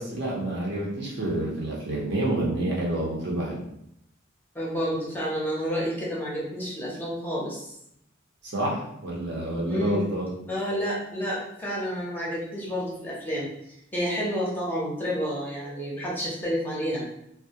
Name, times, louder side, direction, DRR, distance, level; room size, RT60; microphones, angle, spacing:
voice 1, 0.0-3.6 8.4-10.3, right 1 dB, 55° right, -4 dB, 0.7 m, -28 dB
voice 2, 4.5-7.7 9.6-10.1 10.5-13.5 13.9-17.0, equal, 10° left, -5 dB, 0.5 m, -30 dB
2.3 x 2.1 x 2.7 m, 0.76 s
head